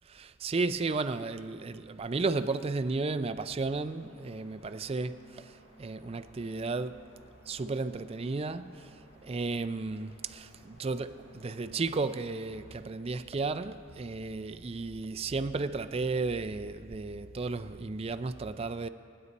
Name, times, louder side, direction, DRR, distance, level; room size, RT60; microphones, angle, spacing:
voice 1, 0.1-7.0 7.5-18.9, right 3 dB, 30° right, 0.4 m, -34 dB
sound 1, 3.5-12.8, equal, 60° left, 4.1 m, -58 dB
24.0 x 9.7 x 4.1 m
head